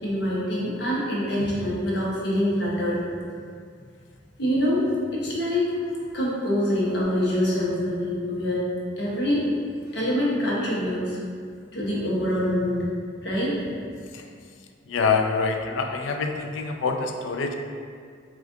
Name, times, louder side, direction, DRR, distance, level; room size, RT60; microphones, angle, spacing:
voice 1, 0.0-3.0 4.4-4.8 5.1-5.7 6.1-8.6 9.0-9.4 9.9-11.2 11.7-12.8 13.2-13.7, equal, 60° left, -6 dB, 0.9 m, -25 dB
voice 2, 14.9-17.6, left 4 dB, 85° left, 4 dB, 0.4 m, -25 dB
5.9 x 2.4 x 2.6 m, 2.1 s
head